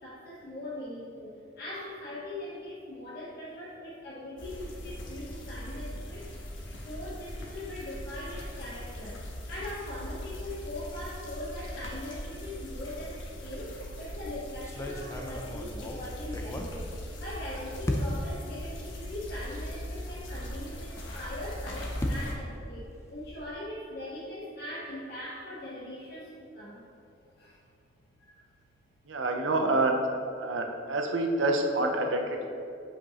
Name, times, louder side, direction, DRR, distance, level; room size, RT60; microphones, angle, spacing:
voice 1, 0.0-6.3 6.8-16.9 17.2-26.8 27.4-27.6 28.2-28.4, left 1 dB, 55° left, -8 dB, 1.2 m, -41 dB
sound 1, 4.4-22.3, equal, 80° left, 1.1 m, -40 dB
sound 2, 13.8-14.1 14.6-17.4 17.8-18.4 19.1-19.2 19.6-19.7 21.3-23.6, left 1 dB, 15° left, 0.5 m, -36 dB
voice 2, 29.1-30.0 30.4-32.5, right 2 dB, 75° right, 3 dB, 0.7 m, -27 dB
8.4 x 5.2 x 2.9 m, 2.7 s
head